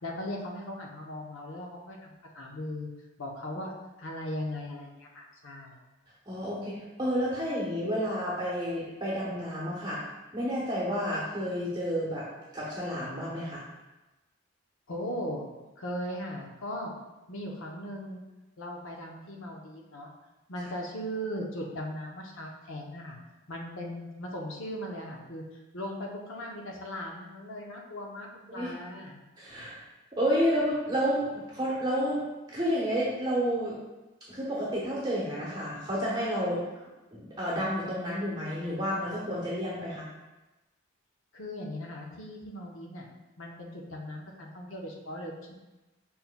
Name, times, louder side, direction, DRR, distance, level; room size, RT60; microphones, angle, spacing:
voice 1, 0.0-2.9 3.2-5.7 14.9-15.5 15.8-16.9 17.3-18.2 18.6-20.1 20.5-23.2 23.5-25.4 25.7-29.2 41.3-43.1 43.4-45.5, equal, 65° left, 0 dB, 0.7 m, -38 dB
voice 2, 6.3-10.0 10.3-12.2 12.5-13.6 20.6-20.7 28.5-28.7 29.4-29.8 30.1-32.2 32.5-33.8 34.3-36.6 37.1-40.0, equal, 20° right, -7 dB, 0.9 m, -30 dB
5.4 x 4.4 x 2.2 m, 1.1 s
head